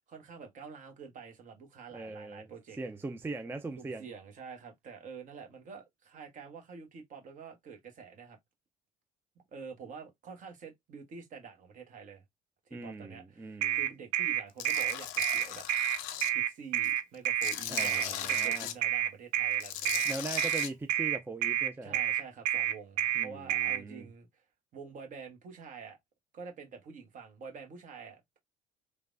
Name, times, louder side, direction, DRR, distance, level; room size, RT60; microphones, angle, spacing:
voice 1, 0.1-2.8 3.8-8.4 9.5-12.2 12.7-15.7 16.3-20.2 21.8-24.3 24.7-26.0 26.3-28.4, right 5 dB, 45° right, 1.0 m, -47 dB
voice 2, 1.9-2.5 2.8-4.1 12.7-13.8 17.7-18.7 20.0-22.0 23.2-24.1, right 3 dB, 10° right, 0.4 m, -40 dB
sound 1, 13.6-23.8, right 11 dB, 70° right, 0.4 m, -29 dB
Tools, 14.6-16.3 16.8-18.7 19.5-20.7, left 11 dB, 70° left, 0.4 m, -38 dB
3.2 x 2.1 x 2.5 m
hypercardioid pair, 60°, 18 cm